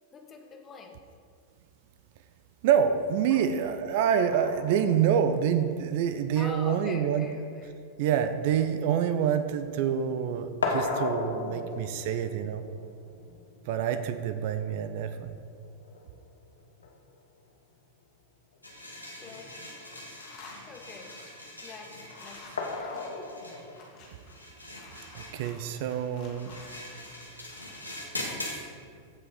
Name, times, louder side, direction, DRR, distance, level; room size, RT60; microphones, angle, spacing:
voice 1, 0.1-1.0 3.3-3.4 6.3-7.7 19.2-19.5 20.7-22.4 22.7-23.1, left 5 dB, 25° left, 3 dB, 1.1 m, -45 dB
voice 2, 2.6-7.3 8.0-12.6 13.7-15.3 25.1-26.6, right 8 dB, 50° right, 10 dB, 0.5 m, -27 dB
sound 1, 4.1-9.8 10.1-17.1 18.5-18.6 19.0-19.1 22.6-23.8, left 3 dB, 70° left, 1.2 m, -37 dB
sound 2, 18.6-28.6, left 1 dB, 85° left, 1.4 m, -43 dB
sound 3, 18.9-19.4 19.7-28.2, left 4 dB, 40° left, 1.9 m, -52 dB
15.0 x 5.1 x 4.0 m, 2.2 s
figure-of-eight pair, 90°, 0 cm